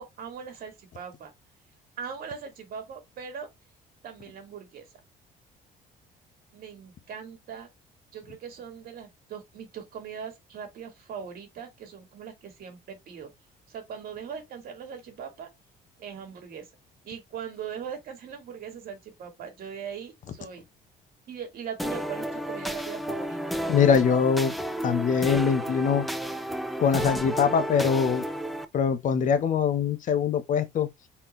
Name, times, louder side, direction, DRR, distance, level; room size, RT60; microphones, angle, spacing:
voice 1, 0.0-1.3 2.0-3.5 4.0-4.9 6.5-7.7 8.1-13.3 13.7-15.5 16.0-16.7 17.0-20.6 21.3-23.6, right 7 dB, 60° right, 2.3 m, -40 dB
sound 1, 21.8-28.6, equal, ahead, 0.5 m, -32 dB
voice 2, 23.7-24.5 24.8-26.0 26.8-28.2 28.7-30.9, left 6 dB, 50° left, 1.0 m, -23 dB
4.3 x 3.8 x 3.1 m
cardioid pair, 110°, 17 cm